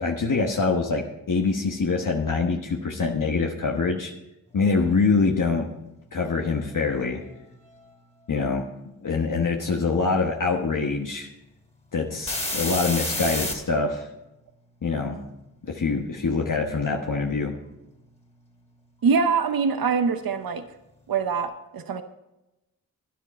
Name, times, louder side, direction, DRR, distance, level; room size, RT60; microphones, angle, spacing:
voice 1, 0.0-4.1 4.5-5.7 6.1-7.2 8.3-8.7 9.0-11.3 11.9-14.1 14.8-15.2 15.6-17.5, left 4 dB, 60° left, 1 dB, 1.2 m, -24 dB
sound 1, 4.8-4.9 5.7-7.9 12.3-13.5 16.0-18.1 18.4-18.5, left 1 dB, 20° left, 2.4 m, -32 dB
voice 2, 19.0-20.6 21.1-22.0, right 5 dB, 75° right, 9 dB, 0.8 m, -24 dB
13.0 x 10.0 x 4.2 m, 0.95 s
cardioid pair, 50°, 35 cm